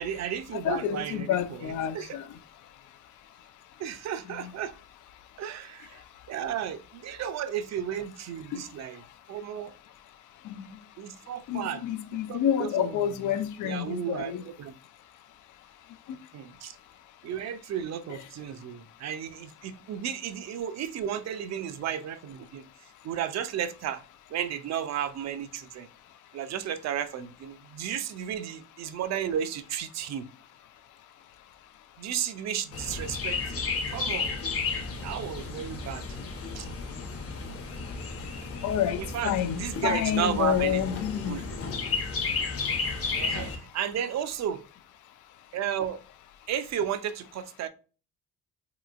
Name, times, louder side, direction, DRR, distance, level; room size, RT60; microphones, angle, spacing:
voice 1, 0.0-2.2 3.8-4.7 5.4-6.0 6.3-9.0 9.3-9.7 11.0-11.8 12.3-13.0 13.6-14.7 16.3-16.8 17.2-22.6 23.0-24.0 24.3-25.9 26.3-30.3 32.0-34.4 35.0-36.1 36.5-36.7 39.0-40.8 41.2-41.6 43.2-44.6 45.5-46.0 46.5-47.7, right 9 dB, 60° right, 0.5 m, -33 dB
voice 2, 0.5-2.3 4.4-4.5 8.5-8.6 10.4-10.7 11.5-14.4 16.1-16.2 18.1-18.2 38.6-41.4, left 10 dB, 80° left, 0.5 m, -29 dB
Chirp tweet, 32.7-43.6, left 4 dB, 50° left, 0.8 m, -33 dB
2.9 x 2.9 x 2.4 m
cardioid pair, 90°, 30 cm